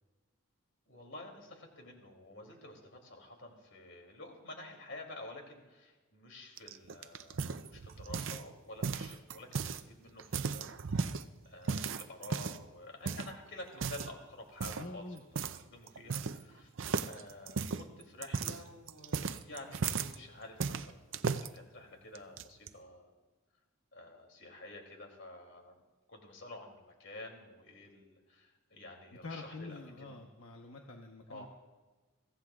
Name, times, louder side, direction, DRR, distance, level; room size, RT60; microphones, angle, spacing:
voice 1, 0.9-15.1 15.3-15.4 15.7-16.7 17.0-23.1 23.9-25.7 26.1-30.2 31.3-31.5, left 2 dB, 60° left, 2 dB, 2.9 m, -50 dB
sound 1, 6.6-8.5 8.8-9.8 10.2-11.2 11.7-12.7 13.1-13.3 13.7-14.1 14.6-14.9 15.4-15.6 15.9-16.5 16.8-20.2 20.6-21.5 22.2-22.7, right 5 dB, 60° right, 0.5 m, -36 dB
voice 2, 14.8-15.2 29.2-31.5, left 3 dB, 80° left, 1 dB, 1.1 m, -46 dB
23.5 x 16.0 x 2.4 m, 1.2 s
head